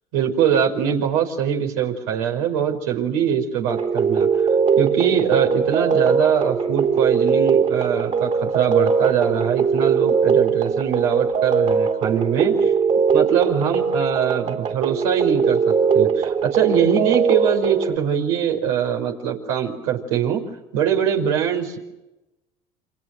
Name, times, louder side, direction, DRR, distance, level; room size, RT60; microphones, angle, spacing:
voice 1, 0.1-4.3 4.8-12.7 13.1-20.4 20.7-21.8, right 8 dB, 85° right, 3 dB, 5.2 m, -22 dB
sound 1, 3.7-18.0, right 6 dB, 45° right, 4.0 m, -20 dB
29.0 x 26.5 x 6.5 m, 0.96 s
supercardioid pair, 85°, 17 cm